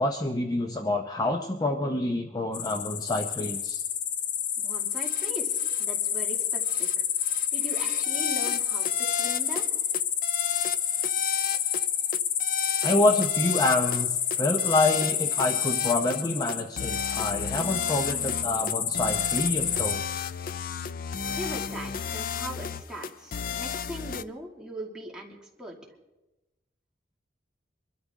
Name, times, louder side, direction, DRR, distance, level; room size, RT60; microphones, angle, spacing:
voice 1, 0.0-3.8 12.8-20.0, left 2 dB, 20° left, 4 dB, 0.7 m, -27 dB
sound 1, 2.5-19.9, left 9 dB, 75° left, 0.8 m, -29 dB
voice 2, 4.6-7.0 7.5-9.7 21.3-25.8, right 1 dB, 5° right, -2 dB, 2.3 m, -40 dB
sound 2, 5.0-5.3 5.6-5.8 6.6-6.9 7.2-9.7 9.9-11.9 12.1-14.0 14.3-16.2 16.5-24.2, left 7 dB, 50° left, 0.4 m, -34 dB
24.0 x 12.5 x 3.6 m, 1.0 s
head